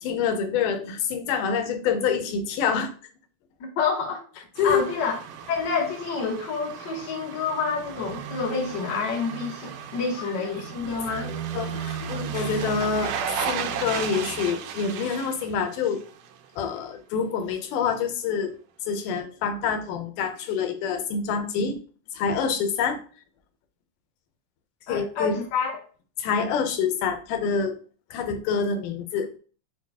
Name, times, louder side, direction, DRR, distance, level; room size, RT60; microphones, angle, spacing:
voice 1, 0.0-2.9 4.6-4.8 10.2-10.3 10.8-13.1 13.5-16.0 16.6-18.5 18.9-21.8 22.1-23.0 24.9-25.3 26.2-27.8 28.1-29.3, left 6 dB, 90° left, 2.3 m, -26 dB
voice 2, 3.7-4.2 4.6-5.2 5.5-11.3 24.9-25.8, left 5 dB, 60° left, 1.1 m, -28 dB
sound 1, 4.6-16.4 16.8-16.9, right 8 dB, 90° right, 2.2 m, -35 dB
6.5 x 2.3 x 3.5 m
omnidirectional pair, 3.6 m